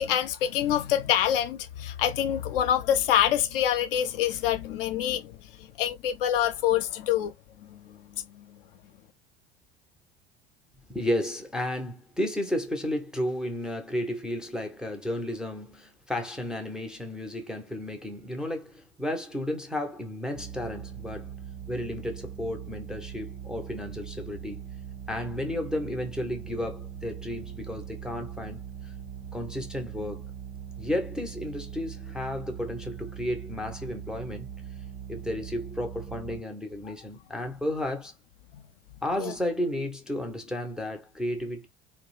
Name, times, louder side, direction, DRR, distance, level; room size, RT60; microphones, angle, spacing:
voice 1, 0.0-7.3 7.6-8.6 39.2-39.3, left 11 dB, 60° left, 0.4 m, -26 dB
voice 2, 10.9-21.3 21.7-24.6 25.1-28.9 29.3-30.3 30.8-34.5 35.1-38.1 39.0-41.7, left 1 dB, ahead, 0.5 m, -33 dB
sound 1, 20.3-36.4, right 8 dB, 85° right, 0.8 m, -41 dB
2.3 x 2.0 x 3.0 m
figure-of-eight pair, 70°, 33 cm